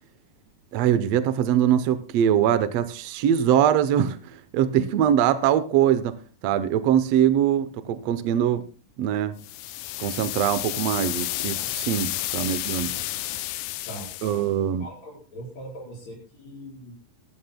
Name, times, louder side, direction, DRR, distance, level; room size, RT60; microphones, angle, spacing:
voice 1, 0.7-4.2 4.5-6.1 6.4-8.6 9.0-9.4 10.0-12.9 14.2-14.9, right 10 dB, 80° right, 12 dB, 1.5 m, -22 dB
sound 1, 9.4-14.4, left 16 dB, 80° left, 2.1 m, -31 dB
voice 2, 13.9-16.9, right 1 dB, 55° left, -3 dB, 5.7 m, -41 dB
21.5 x 11.0 x 2.2 m, 0.34 s
omnidirectional pair, 3.9 m